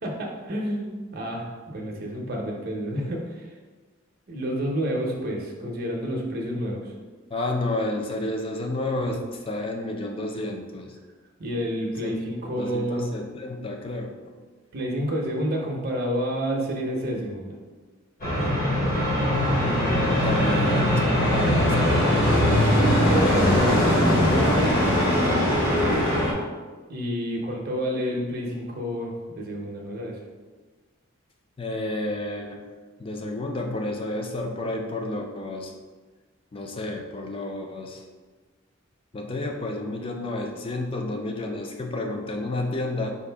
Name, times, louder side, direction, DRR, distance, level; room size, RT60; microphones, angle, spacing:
voice 1, 0.0-3.5 4.3-6.9 11.4-13.1 14.7-17.6 26.9-30.2, equal, 45° right, -1 dB, 0.6 m, -29 dB
voice 2, 7.3-10.9 12.0-12.1 12.5-14.3 19.5-23.5 31.6-32.6 33.0-35.7 36.5-38.0 39.1-43.2, left 2 dB, 25° left, 3 dB, 0.4 m, -31 dB
sound 1, 18.2-26.3, equal, 45° left, 1.0 m, -21 dB
4.5 x 2.5 x 3.3 m, 1.4 s
head